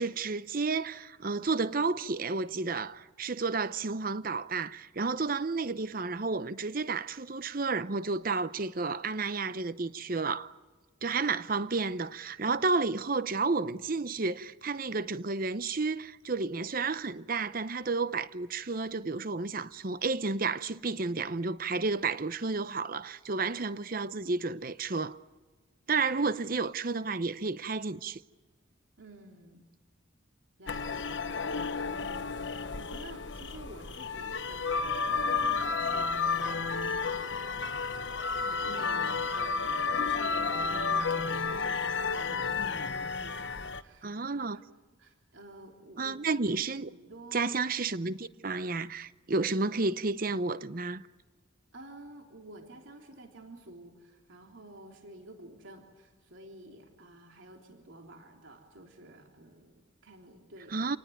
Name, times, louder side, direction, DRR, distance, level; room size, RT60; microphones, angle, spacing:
voice 1, 0.0-10.5 11.0-25.2 25.9-28.2 44.0-44.6 46.0-46.9 47.3-51.0 60.7-61.0, right 4 dB, 45° right, 0.8 m, -31 dB
voice 2, 29.0-29.6 30.6-44.6 45.0-46.2 46.9-47.5 51.7-60.8, right 1 dB, 65° right, 3.3 m, -51 dB
sound 1, 30.7-43.8, left 4 dB, 60° left, 1.1 m, -31 dB
28.5 x 19.0 x 9.2 m
head